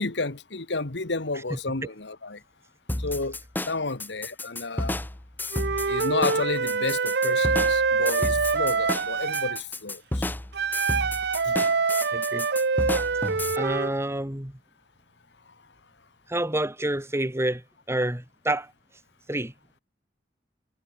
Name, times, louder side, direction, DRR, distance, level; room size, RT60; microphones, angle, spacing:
voice 1, 0.0-2.4 3.0-3.4 3.7-5.0 5.9-10.2, left 3 dB, 70° left, 1.7 m, -31 dB
sound 1, 2.9-13.6, left 1 dB, 10° left, 0.6 m, -31 dB
Wind instrument woodwind instrument, 5.5-9.6 10.5-13.9, right 5 dB, 65° right, 0.9 m, -25 dB
voice 2, 12.1-12.5 13.5-14.6 16.3-18.7 19.3-19.5, right 1 dB, 15° right, 2.0 m, -28 dB
head